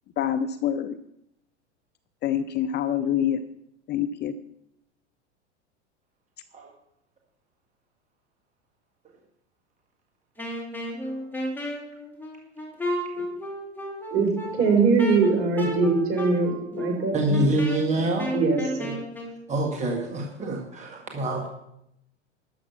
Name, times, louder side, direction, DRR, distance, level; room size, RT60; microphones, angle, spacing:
voice 1, 0.2-1.0 2.2-3.4 3.9-4.3, left 9 dB, 30° left, 12 dB, 0.6 m, -26 dB
Wind instrument woodwind instrument, 10.4-19.4, equal, 5° left, 2.9 m, -33 dB
voice 2, 14.1-17.4 18.3-19.0, right 4 dB, 40° right, 2 dB, 4.3 m, -22 dB
voice 3, 17.1-18.3 19.5-21.5, right 1 dB, 20° right, 0 dB, 1.9 m, -26 dB
13.0 x 7.4 x 5.9 m, 0.81 s
hypercardioid pair, 95°, 36 cm